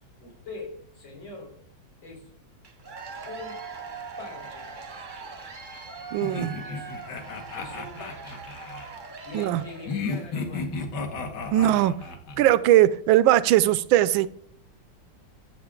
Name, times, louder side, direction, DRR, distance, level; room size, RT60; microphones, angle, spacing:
voice 1, 0.2-1.6 2.0-2.3 3.3-3.6 4.2-5.3 6.1-6.9 7.6-8.4 9.2-10.8, left 2 dB, 85° left, -2 dB, 4.4 m, -43 dB
Cheering / Applause / Crowd, 2.6-10.3, right 4 dB, 40° right, 0.8 m, -41 dB
voice 2, 6.1-6.5 9.3-9.6 11.5-11.9 12.4-14.3, right 13 dB, 85° right, 16 dB, 1.4 m, -19 dB
sound 1, 6.2-8.9 9.9-12.5, left 4 dB, 60° left, 1.7 m, -34 dB
12.0 x 7.6 x 3.7 m, 0.65 s
omnidirectional pair, 2.1 m